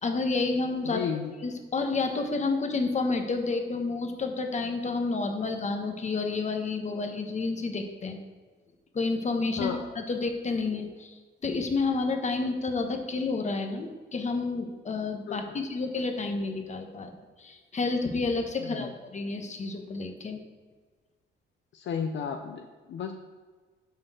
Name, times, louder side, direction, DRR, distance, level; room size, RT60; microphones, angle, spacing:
voice 1, 0.0-1.0 1.4-8.2 8.9-17.1 17.4-20.4, left 3 dB, 35° left, 5 dB, 1.3 m, -30 dB
voice 2, 0.8-1.3 9.6-9.9 15.3-15.6 18.6-18.9 21.7-23.1, left 7 dB, 65° left, 5 dB, 0.7 m, -33 dB
9.3 x 4.5 x 6.5 m, 1.4 s
cardioid pair, 90°, 20 cm